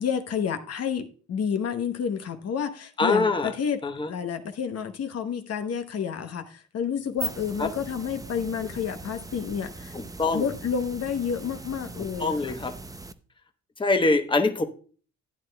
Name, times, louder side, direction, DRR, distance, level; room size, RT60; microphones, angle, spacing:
voice 1, 0.0-3.8 4.1-9.9 10.3-12.5, left 7 dB, 55° left, 0.9 m, -30 dB
voice 2, 3.0-3.5 3.8-4.1 7.6-7.7 9.9-10.5 12.2-12.7 13.8-14.6, left 3 dB, 15° left, 1.0 m, -24 dB
sound 1, 7.0-13.1, right 2 dB, 10° right, 0.6 m, -40 dB
13.0 x 9.0 x 2.2 m
cardioid pair, 90°, 30 cm